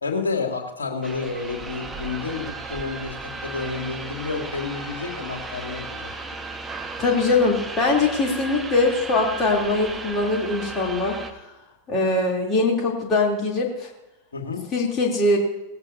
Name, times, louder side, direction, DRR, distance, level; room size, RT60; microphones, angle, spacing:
voice 1, 0.0-6.1 14.3-14.6, left 4 dB, 70° left, 2 dB, 2.5 m, -30 dB
sound 1, 1.0-11.3, right 3 dB, 10° right, 1.5 m, -35 dB
voice 2, 7.0-11.2 11.9-13.9 14.7-15.4, left 3 dB, 30° left, -1 dB, 3.2 m, -22 dB
19.0 x 17.0 x 2.8 m, 0.97 s
figure-of-eight pair, 90°, 0 cm